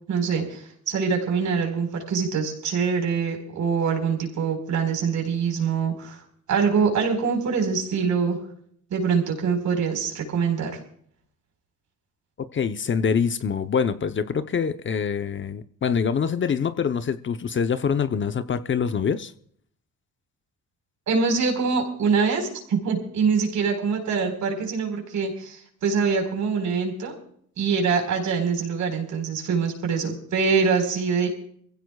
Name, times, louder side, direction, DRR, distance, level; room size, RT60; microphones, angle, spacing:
voice 1, 0.1-6.2 6.5-8.4 8.9-10.8 21.1-27.2 27.6-31.3, right 5 dB, 70° right, 4.6 m, -24 dB
voice 2, 12.4-19.3, left 6 dB, 40° left, 0.8 m, -25 dB
24.5 x 16.0 x 2.4 m
cardioid pair, 90°, 30 cm